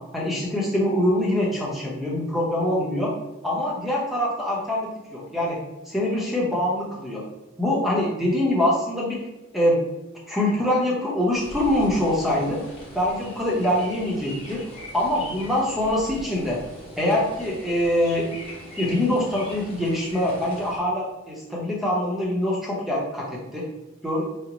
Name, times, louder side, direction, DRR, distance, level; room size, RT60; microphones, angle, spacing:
voice 1, 0.1-3.1 3.4-5.6 5.9-7.2 7.6-9.2 9.5-9.8 10.3-12.6 12.9-14.6 14.9-16.6 17.0-18.3 18.8-23.7 24.0-24.3, left 1 dB, ahead, -4 dB, 0.7 m, -24 dB
sound 1, 11.3-20.8, left 1 dB, 25° left, 0.9 m, -41 dB
4.9 x 2.1 x 3.0 m, 1.1 s
head